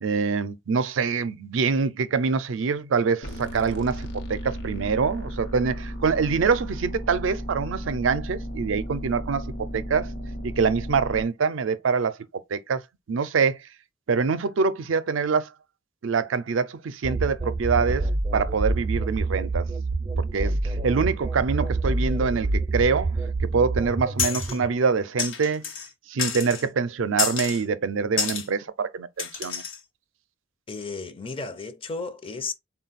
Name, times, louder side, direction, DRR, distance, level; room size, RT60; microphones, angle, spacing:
voice 1, 0.0-9.5 9.7-10.1 10.4-12.2 12.5-12.8 13.1-13.6 14.1-15.5 16.0-19.6 20.2-23.1 23.4-25.6 26.1-29.6, right 5 dB, 80° right, 0.5 m, -25 dB
sound 1, 3.2-11.2, equal, 60° left, 0.9 m, -34 dB
sound 2, 17.0-24.7, right 3 dB, 25° right, 0.4 m, -27 dB
sound 3, 24.2-24.6 25.2-25.9 26.2-26.7 27.2-27.6 28.2-28.5 29.2-29.8, left 7 dB, 90° left, 1.0 m, -28 dB
voice 2, 30.7-32.5, left 4 dB, 30° left, 0.5 m, -34 dB
4.0 x 2.2 x 4.0 m
head